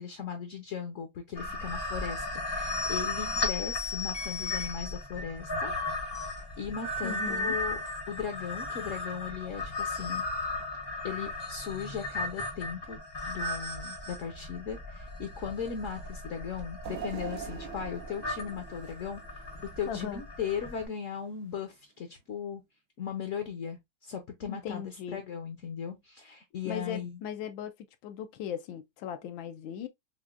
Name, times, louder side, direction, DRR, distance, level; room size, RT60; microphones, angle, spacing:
voice 1, 0.0-5.7 6.6-10.2 11.0-13.0 13.3-19.5 19.8-22.6 23.0-27.2, left 7 dB, 60° left, 0.8 m, -37 dB
sound 1, 1.4-20.8, left 2 dB, 25° left, 0.5 m, -36 dB
voice 2, 7.0-7.5 19.9-20.2 24.5-25.2 26.6-27.7 28.0-29.9, left 8 dB, 85° left, 1.3 m, -38 dB
sound 2, 16.8-20.0 20.4-20.6 21.6-21.7, right 8 dB, 75° right, 1.2 m, -43 dB
5.9 x 2.1 x 2.4 m
omnidirectional pair, 2.0 m